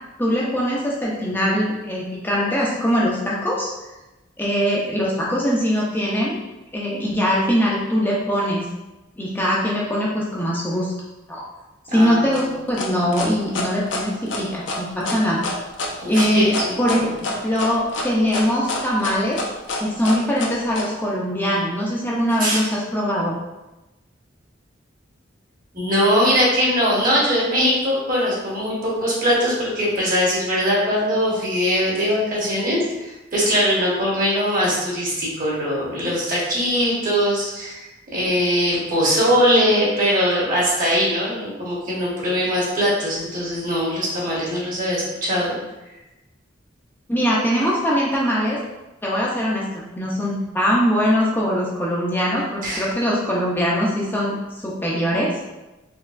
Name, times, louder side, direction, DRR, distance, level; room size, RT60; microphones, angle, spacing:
voice 1, 0.2-3.7 4.4-6.4 6.7-8.6 9.2-10.9 11.3-11.4 11.9-15.5 16.1-16.5 16.8-17.1 17.4-19.4 19.8-23.4 47.1-48.6 49.0-54.4 54.6-55.4, equal, 10° left, -5 dB, 0.5 m, -22 dB
voice 2, 11.9-12.4 16.0-17.1 22.3-22.6 25.7-45.5 52.6-52.9, equal, 45° right, -5 dB, 1.2 m, -21 dB
sound 1, 12.3-20.9, left 2 dB, 70° left, 0.6 m, -27 dB
4.3 x 3.0 x 2.5 m, 1.0 s
head